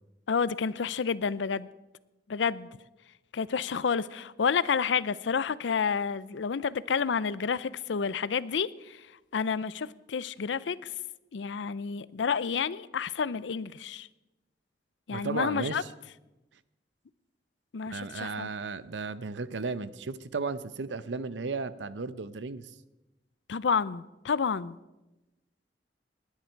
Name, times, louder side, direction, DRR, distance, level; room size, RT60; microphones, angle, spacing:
voice 1, 0.3-1.7 2.3-2.7 3.3-9.0 9.3-10.9 11.3-14.1 15.1-15.8 17.7-18.5 23.5-24.8, left 6 dB, 85° left, 0.5 m, -30 dB
voice 2, 15.1-15.9 17.9-22.7, right 4 dB, 80° right, 0.7 m, -34 dB
19.0 x 10.5 x 4.6 m
head